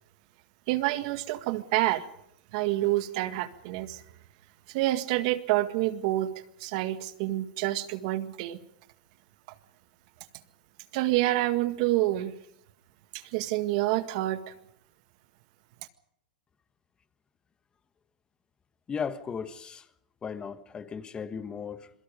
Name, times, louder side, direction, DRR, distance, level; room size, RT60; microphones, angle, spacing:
voice 1, 0.7-2.1 2.5-4.0 4.7-6.3 6.6-8.6 10.9-12.3 13.1-14.5, right 16 dB, 60° right, 1.8 m, -28 dB
voice 2, 18.9-19.9 20.2-21.9, left 6 dB, 20° left, 1.4 m, -36 dB
27.5 x 22.5 x 5.4 m
supercardioid pair, 125°, 4 cm